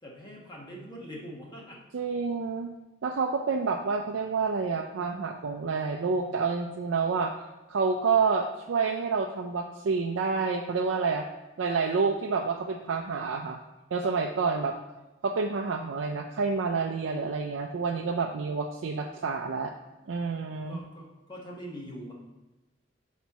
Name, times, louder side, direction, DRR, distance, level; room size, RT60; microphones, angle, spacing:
voice 1, 0.0-1.8 20.7-22.1, equal, 25° left, -3 dB, 1.2 m, -43 dB
voice 2, 1.9-2.7 3.0-7.3 7.7-11.3 11.6-13.6 13.9-14.7 15.2-19.7 20.1-20.8, right 4 dB, 85° right, 2 dB, 0.4 m, -28 dB
4.4 x 4.1 x 5.6 m, 1.1 s
head